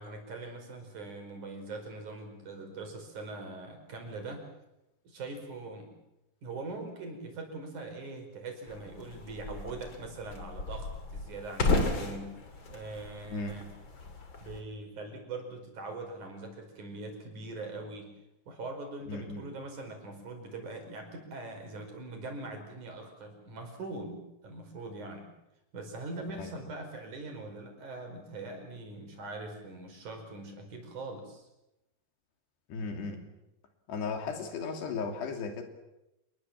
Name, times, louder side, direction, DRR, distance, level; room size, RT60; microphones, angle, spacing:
voice 1, 0.0-4.4 5.0-6.0 6.4-13.7 14.4-18.1 18.5-25.3 25.7-31.5, right 2 dB, 50° right, 3 dB, 6.2 m, -42 dB
sound 1, 8.7-14.6, left 3 dB, 35° left, 3.0 m, -34 dB
voice 2, 13.3-13.6 19.1-19.5 26.4-26.5 32.7-33.3 33.9-35.6, left 4 dB, 80° left, 5 dB, 5.0 m, -36 dB
28.0 x 21.5 x 7.4 m, 0.91 s
omnidirectional pair, 4.7 m